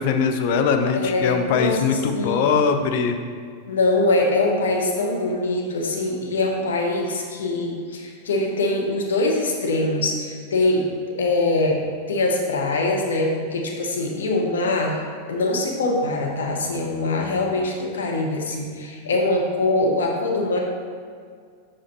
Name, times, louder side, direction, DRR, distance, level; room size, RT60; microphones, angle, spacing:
voice 1, 0.0-3.2, left 5 dB, 50° left, 6 dB, 0.5 m, -21 dB
voice 2, 0.9-2.5 3.7-10.9 11.2-11.8 12.1-15.0 15.3-20.6, left 2 dB, 65° left, 0 dB, 0.9 m, -23 dB
7.1 x 4.9 x 3.0 m, 2.1 s
figure-of-eight pair, 90°, 0 cm